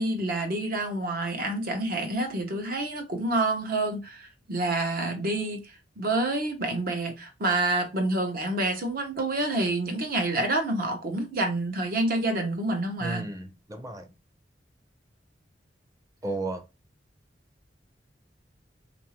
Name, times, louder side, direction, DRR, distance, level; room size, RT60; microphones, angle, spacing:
voice 1, 0.0-5.6 6.0-13.2, right 2 dB, 55° right, 0.9 m, -28 dB
voice 2, 13.0-14.1 16.2-16.6, right 2 dB, 20° right, 0.6 m, -33 dB
3.9 x 2.6 x 2.9 m
head